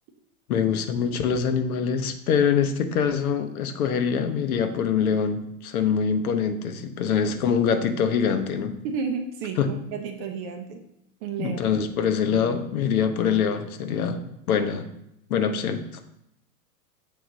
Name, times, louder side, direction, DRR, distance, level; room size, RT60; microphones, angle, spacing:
voice 1, 0.5-8.8 9.6-9.7 11.4-14.9 15.3-15.8, left 7 dB, 75° left, 8 dB, 0.8 m, -24 dB
voice 2, 8.8-10.8 11.2-11.6, right 5 dB, 30° right, 5 dB, 0.5 m, -31 dB
6.5 x 3.8 x 3.9 m, 0.80 s
hypercardioid pair, 135°, 44 cm